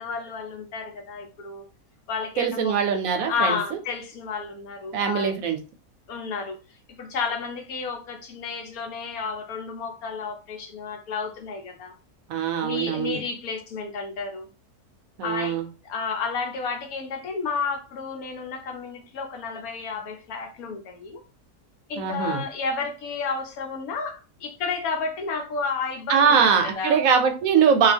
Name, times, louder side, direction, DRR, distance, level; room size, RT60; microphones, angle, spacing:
voice 1, 0.0-1.6 2.1-2.8 3.2-5.4 6.1-6.6 7.0-11.9 12.6-14.5 15.2-15.6 15.8-21.2 21.9-27.0, left 5 dB, 75° left, 1.2 m, -31 dB
voice 2, 2.4-3.6 4.9-5.6 12.3-13.2 15.2-15.7 22.0-22.4 26.1-27.9, right 6 dB, 70° right, 0.9 m, -22 dB
2.8 x 2.3 x 3.3 m
omnidirectional pair, 1.6 m